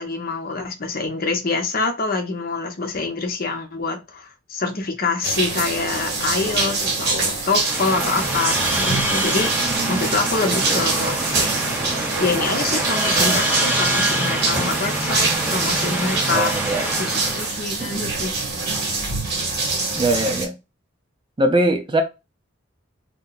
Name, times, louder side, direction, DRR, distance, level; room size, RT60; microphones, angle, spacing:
voice 1, 0.0-9.5 9.9-11.1 12.2-18.3, left 4 dB, 50° left, 0.6 m, -26 dB
sound 1, 5.2-20.5, right 3 dB, 55° right, 1.1 m, -25 dB
sound 2, 7.5-17.6, right 1 dB, 5° right, 1.8 m, -25 dB
voice 2, 9.6-10.8 16.3-16.9 17.8-18.1 20.0-20.5 21.4-22.0, right 1 dB, 25° right, 0.4 m, -23 dB
2.7 x 2.2 x 3.8 m
head